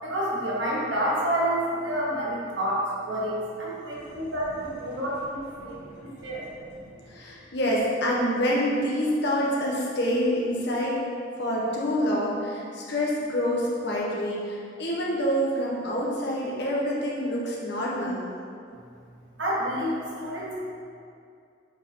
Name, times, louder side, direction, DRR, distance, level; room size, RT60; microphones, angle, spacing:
voice 1, 0.0-6.5 6.7-6.8 19.4-20.6, right 1 dB, 75° right, -6 dB, 1.7 m, -29 dB
voice 2, 5.6-6.4 7.1-10.9 11.4-18.2, equal, 65° left, -4 dB, 1.4 m, -27 dB
7.7 x 5.0 x 3.9 m, 2.4 s
head